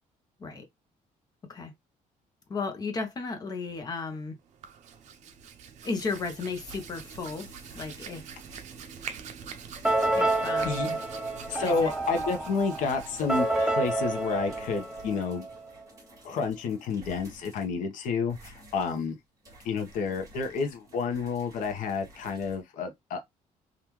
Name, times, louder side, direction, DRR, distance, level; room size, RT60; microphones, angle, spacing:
voice 1, 2.5-4.4 5.8-7.5 7.7-8.3 10.1-11.0 11.6-11.9, left 4 dB, 30° left, 0.8 m, -34 dB
Hands, 4.4-15.8, right 7 dB, 60° right, 0.6 m, -45 dB
sound 1, 5.8-22.6, right 1 dB, 25° right, 1.7 m, -53 dB
sound 2, 9.8-15.6, right 2 dB, 5° right, 0.4 m, -29 dB
voice 2, 11.5-15.5 16.2-19.1 19.6-23.2, left 5 dB, 70° left, 0.9 m, -30 dB
3.6 x 2.5 x 3.0 m
cardioid pair, 165°, 14 cm